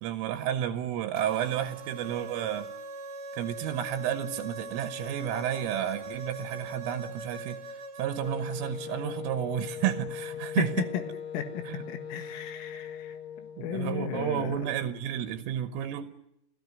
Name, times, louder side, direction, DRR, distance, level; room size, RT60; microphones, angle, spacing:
voice 1, 0.0-2.7 3.3-10.9 11.7-11.8 13.6-16.1, right 10 dB, 80° right, 9 dB, 3.6 m, -31 dB
sound 1, 1.2-8.4, right 2 dB, 55° right, 1.5 m, -41 dB
Wind instrument woodwind instrument, 8.2-13.9, left 8 dB, 60° left, 3.4 m, -40 dB
voice 2, 10.6-11.0 11.3-14.6, left 9 dB, 80° left, 7 dB, 4.4 m, -34 dB
29.5 x 17.5 x 9.7 m, 0.83 s
omnidirectional pair, 5.9 m